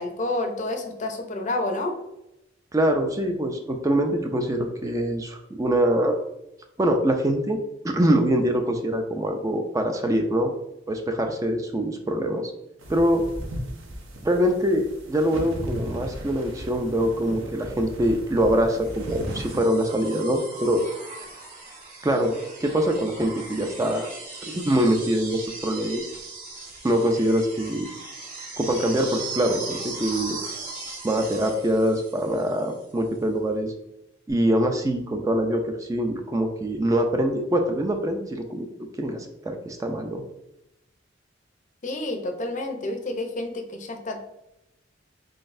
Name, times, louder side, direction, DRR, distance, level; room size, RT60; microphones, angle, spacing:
voice 1, 0.0-2.0 41.8-44.2, left 2 dB, 40° left, 5 dB, 0.6 m, -29 dB
voice 2, 2.7-6.2 6.8-7.6 7.8-10.5 10.9-12.5 12.9-13.2 14.2-20.8 22.0-22.3 22.6-24.1 24.5-26.1 26.8-27.9 28.6-30.4 31.0-33.7 34.3-38.7 39.0-40.2, right 1 dB, 15° right, 4 dB, 0.3 m, -24 dB
sound 1, 12.8-19.6, equal, 85° right, 0.9 m, -36 dB
sound 2, 18.8-32.8 34.3-34.4, right 3 dB, 40° right, 1.5 m, -38 dB
4.2 x 3.9 x 2.5 m, 0.88 s
head